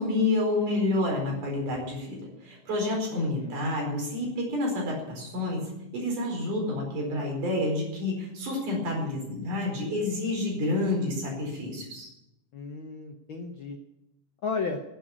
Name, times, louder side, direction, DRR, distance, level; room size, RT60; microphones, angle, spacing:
voice 1, 0.0-12.1, left 2 dB, 85° right, 0 dB, 6.0 m, -29 dB
voice 2, 3.1-3.6 12.5-13.8 14.4-14.8, left 4 dB, 65° left, 4 dB, 1.2 m, -34 dB
15.0 x 8.1 x 8.4 m, 0.87 s
omnidirectional pair, 3.5 m